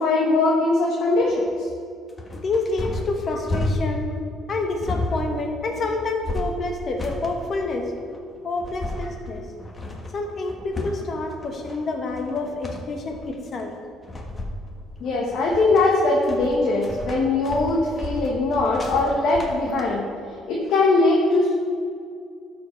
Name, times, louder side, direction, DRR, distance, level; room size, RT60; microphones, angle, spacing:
voice 1, 0.0-1.7 3.3-3.4 15.0-20.0 20.5-21.5, left 2 dB, 65° left, -2 dB, 1.2 m, -21 dB
sound 1, 1.2-19.8, left 1 dB, 25° left, 1.4 m, -32 dB
voice 2, 2.4-4.1 4.5-7.9 8.4-9.4 10.1-13.7, left 3 dB, 45° left, 3 dB, 1.3 m, -28 dB
12.0 x 5.1 x 4.5 m, 2.3 s
cardioid pair, 90°, 0 cm